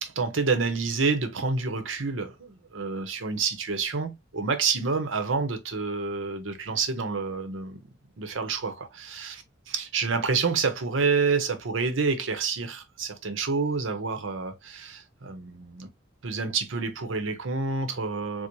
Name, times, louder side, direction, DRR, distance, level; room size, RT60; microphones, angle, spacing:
voice 1, 0.0-9.4 9.7-15.9 16.2-18.5, right 4 dB, 80° right, 0.7 m, -28 dB
4.4 x 2.1 x 2.5 m
head